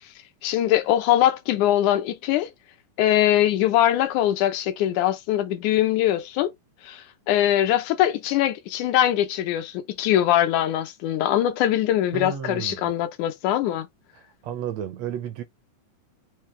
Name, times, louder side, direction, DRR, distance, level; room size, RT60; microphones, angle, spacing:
voice 1, 0.4-2.5 3.0-6.5 6.8-13.9, left 12 dB, 80° left, 2.2 m, -22 dB
voice 2, 12.1-12.9 14.1-15.4, right 9 dB, 75° right, 1.7 m, -33 dB
5.5 x 2.7 x 3.2 m
omnidirectional pair, 3.4 m